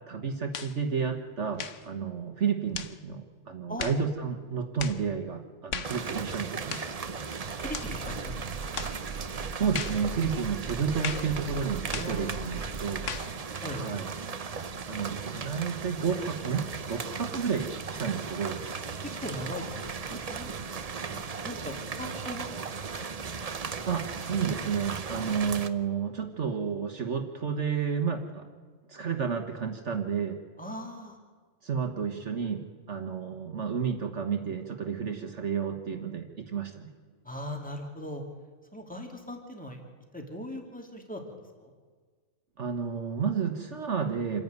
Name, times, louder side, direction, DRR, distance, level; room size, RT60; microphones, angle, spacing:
voice 1, 0.0-3.2 3.5-6.8 9.5-13.0 13.7-14.1 14.9-18.6 23.8-28.5 28.9-30.4 31.6-36.9 42.6-44.4, right 6 dB, 60° right, 4 dB, 1.7 m, -31 dB
sound 1, 0.5-0.8 1.5-1.9 2.7-3.0 3.8-4.0 4.8-5.0 5.7-6.0 6.7-6.9 7.7-7.9 8.8-9.0 9.7-10.0 11.0-11.3 11.9-12.2 13.1-13.3, left 7 dB, 65° left, 1.3 m, -36 dB
sound 2, 5.8-25.7, right 5 dB, 35° right, 0.7 m, -37 dB
voice 2, 7.6-8.7 12.0-12.7 13.6-13.8 18.9-19.0 19.2-20.5 21.1-22.5 23.0-23.1 30.6-31.2 37.2-38.2 38.7-39.8 40.1-41.2 41.6-41.7, left 1 dB, 5° left, 3 dB, 2.7 m, -39 dB
sound 3, 7.6-13.2, right 4 dB, 85° right, 1.5 m, -40 dB
27.5 x 10.5 x 9.5 m, 1.5 s
omnidirectional pair, 1.4 m